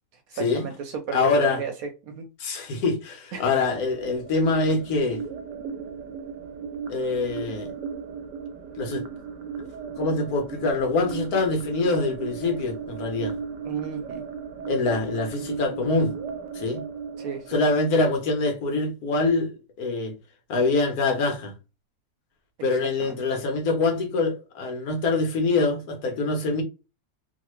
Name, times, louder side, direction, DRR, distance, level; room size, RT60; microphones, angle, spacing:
voice 1, 0.3-1.7 2.0-2.3 3.3-3.4 13.6-14.2 17.2-17.5 23.0-23.2, right 6 dB, 70° right, 0.9 m, -33 dB
voice 2, 1.1-1.6 2.4-5.2 6.9-7.7 8.8-9.0 9.8-13.3 14.7-16.1 16.5-16.8 17.5-19.5 19.8-20.1 20.5-21.5 22.6-26.6, left 3 dB, 65° left, 1.2 m, -24 dB
sound 1, 3.6-18.6, right 6 dB, 90° right, 1.2 m, -36 dB
3.0 x 2.2 x 3.0 m
omnidirectional pair, 1.8 m